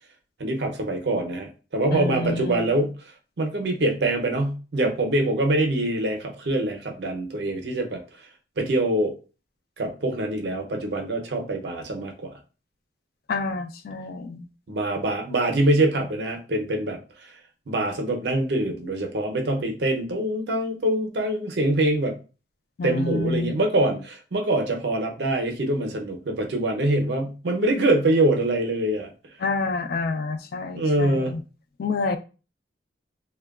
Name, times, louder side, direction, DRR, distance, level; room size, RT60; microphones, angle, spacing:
voice 1, 0.4-2.9 3.4-8.0 8.6-9.1 9.8-12.3 14.7-17.3 17.7-22.2 22.8-29.1 30.7-31.3, right 1 dB, 65° right, 0.5 m, -24 dB
voice 2, 1.9-2.6 13.3-14.5 22.8-23.5 29.4-31.4 31.8-32.2, left 3 dB, 55° left, 0.3 m, -28 dB
2.9 x 2.1 x 2.3 m
head